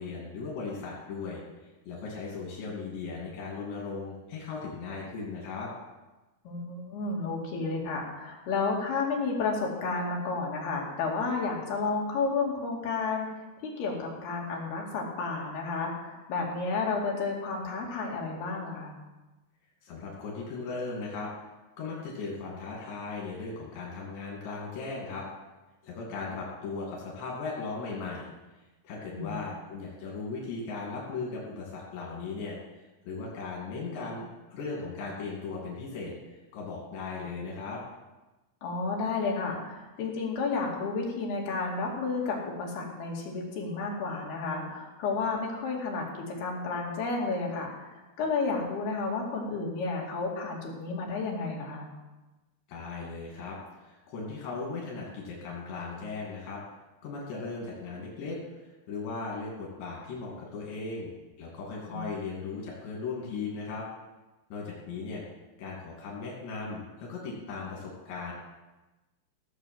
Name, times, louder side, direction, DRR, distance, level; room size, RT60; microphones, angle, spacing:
voice 1, 0.0-1.4 1.9-5.7 19.8-21.3 21.8-25.3 25.8-28.3 28.8-32.6 33.1-37.8 52.7-56.6 57.0-61.1 61.4-63.9 64.5-65.2 65.6-68.3, left 4 dB, 85° left, -3 dB, 4.8 m, -37 dB
voice 2, 6.4-18.9 29.1-29.4 38.6-51.9 61.9-62.1, left 4 dB, 70° left, -2 dB, 4.4 m, -31 dB
17.0 x 7.1 x 7.9 m, 1.1 s
omnidirectional pair, 4.9 m